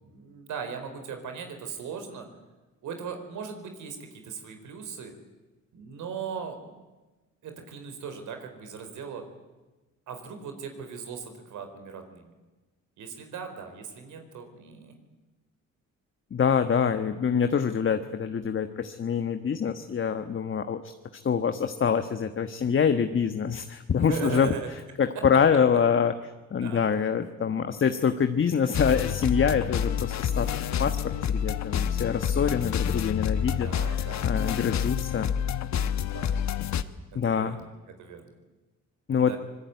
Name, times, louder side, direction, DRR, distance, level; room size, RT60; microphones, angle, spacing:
voice 1, 0.0-2.3 2.8-5.1 5.7-6.8 7.4-9.2 10.1-12.3 13.0-14.9 24.0-24.7 26.6-26.8 33.6-34.9 36.0-36.4 37.2-37.7 38.0-38.3 39.1-39.4, right 6 dB, 80° right, 6 dB, 4.8 m, -38 dB
voice 2, 16.3-20.9 21.2-24.5 25.0-26.1 26.5-31.0 31.3-35.3 37.1-37.6 39.1-39.3, left 7 dB, 40° left, 8 dB, 1.4 m, -25 dB
sound 1, 28.7-36.8, left 8 dB, 65° left, 1.3 m, -28 dB
24.5 x 21.0 x 9.5 m, 1.2 s
cardioid pair, 90°, 30 cm